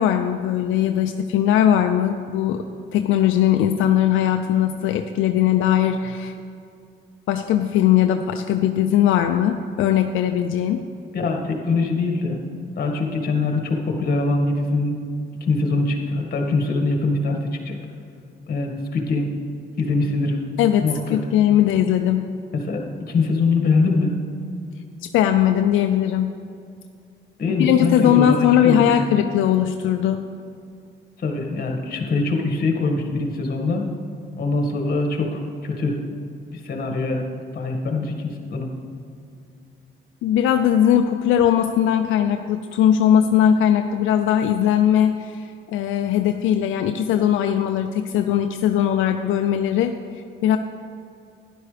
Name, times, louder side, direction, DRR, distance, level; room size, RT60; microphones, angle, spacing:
voice 1, 0.0-2.6 2.9-6.3 7.3-10.8 20.6-22.3 25.0-26.3 27.6-30.2 40.2-50.6, left 10 dB, 85° left, 6 dB, 0.5 m, -19 dB
voice 2, 11.1-12.4 12.8-14.9 15.5-17.8 18.5-19.3 19.8-20.4 20.8-21.2 22.5-22.8 23.1-24.1 27.4-28.9 31.2-33.9 34.4-36.0 36.5-37.2 37.5-38.7, left 3 dB, 50° left, 2 dB, 1.9 m, -23 dB
12.0 x 11.0 x 3.4 m, 2.4 s
cardioid pair, 90°, 20 cm